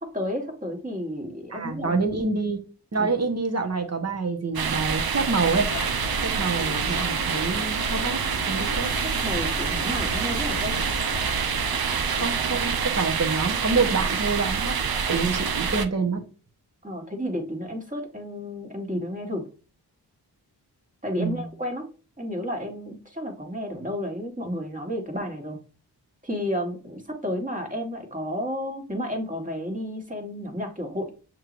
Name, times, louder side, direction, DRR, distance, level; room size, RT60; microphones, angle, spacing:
voice 1, 0.0-2.0 3.0-3.1 9.2-10.8 16.8-19.4 21.0-21.9 22.2-25.6 26.2-31.1, equal, 20° right, 1 dB, 1.5 m, -31 dB
voice 2, 1.5-2.6 2.9-5.7 6.2-8.2 8.5-8.9 12.1-14.7 15.1-16.2 21.2-21.5, right 4 dB, 40° right, 4 dB, 1.1 m, -27 dB
sound 1, 4.5-15.9, right 6 dB, 60° right, 0.6 m, -26 dB
sound 2, 5.5-12.9, left 4 dB, 45° left, 0.7 m, -37 dB
6.5 x 3.1 x 2.5 m, 0.36 s
cardioid pair, 55°, 41 cm